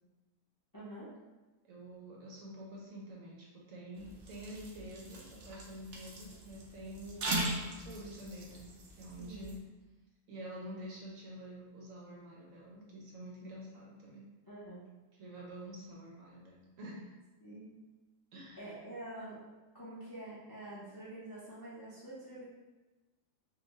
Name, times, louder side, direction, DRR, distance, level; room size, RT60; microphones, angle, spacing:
voice 1, 0.7-1.1 9.2-9.6 14.5-14.8 17.4-17.7 18.6-19.4 19.7-22.5, right 1 dB, 35° left, -9 dB, 0.3 m, -47 dB
voice 2, 1.6-9.6 10.3-14.2 15.2-17.1 18.3-18.7, right 1 dB, 65° right, -3 dB, 0.9 m, -48 dB
sound 1, 4.0-9.6, right 2 dB, 80° right, 0.5 m, -40 dB
3.8 x 2.2 x 3.0 m, 1.2 s
omnidirectional pair, 1.7 m